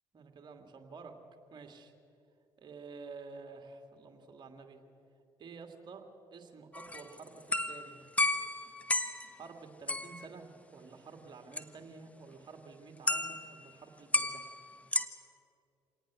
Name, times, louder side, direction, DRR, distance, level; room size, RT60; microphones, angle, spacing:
voice 1, 0.1-1.1 1.5-1.9 2.6-4.8 5.4-6.0 6.3-8.1 9.3-14.4, right 4 dB, 45° right, 5 dB, 2.7 m, -50 dB
sound 1, 6.7-9.4 9.9-10.3 11.5-11.6 13.1-13.6 14.1-15.1, left 2 dB, 10° left, 1.3 m, -32 dB
27.0 x 18.5 x 6.4 m, 2.7 s
hypercardioid pair, 50°, 11 cm